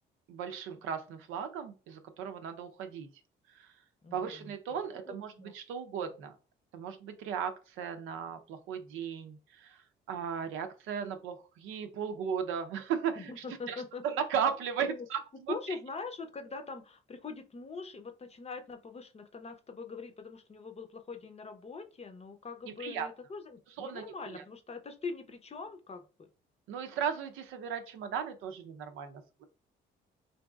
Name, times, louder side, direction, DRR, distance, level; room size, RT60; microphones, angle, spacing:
voice 1, 0.3-3.1 3.5-3.7 4.1-6.3 6.7-13.8 14.0-15.2 15.5-15.6 22.7-23.1 23.8-24.4 26.7-29.4, right 7 dB, 85° right, 7 dB, 0.6 m, -36 dB
voice 2, 4.0-4.5 5.1-5.5 13.2-14.0 14.8-15.1 15.5-26.3, left 4 dB, 30° left, 8 dB, 0.6 m, -43 dB
3.9 x 2.6 x 2.3 m, 0.34 s
cardioid pair, 75°, 20 cm